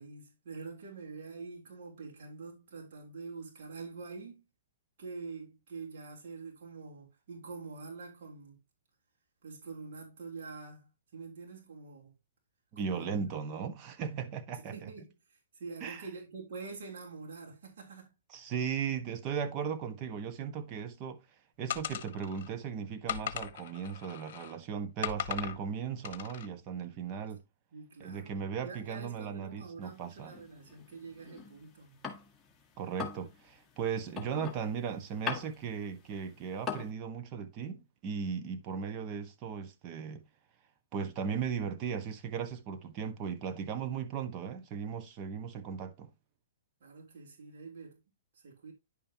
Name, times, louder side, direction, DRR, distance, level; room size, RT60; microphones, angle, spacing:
voice 1, 0.0-4.5 5.0-8.6 9.4-12.1 12.8-13.4 14.5-18.1 27.7-32.0 46.8-48.0 48.4-48.7, right 4 dB, 60° right, 3.5 m, -46 dB
voice 2, 12.7-14.9 15.8-16.1 18.3-21.2 21.6-27.4 28.0-30.3 32.8-40.2 40.9-46.1, right 6 dB, 35° right, 1.4 m, -37 dB
sound 1, 21.7-22.5 23.1-24.6 25.0-25.6 26.0-26.5, left 10 dB, 55° left, 1.1 m, -38 dB
sound 2, 29.8-32.5 32.8-36.9, left 6 dB, 10° left, 1.8 m, -41 dB
10.5 x 5.6 x 2.9 m
hypercardioid pair, 130°, 0 cm